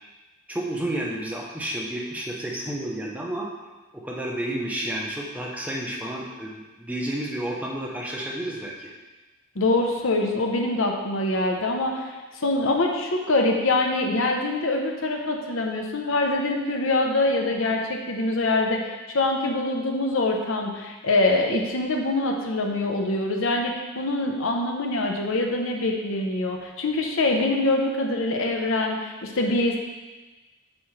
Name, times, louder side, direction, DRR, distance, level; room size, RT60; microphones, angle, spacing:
voice 1, 0.5-3.5 3.9-8.9, right 1 dB, 5° right, -3 dB, 0.7 m, -31 dB
voice 2, 9.6-12.1 12.3-29.8, left 2 dB, 65° left, 2 dB, 0.8 m, -24 dB
7.3 x 6.0 x 3.3 m, 1.2 s
head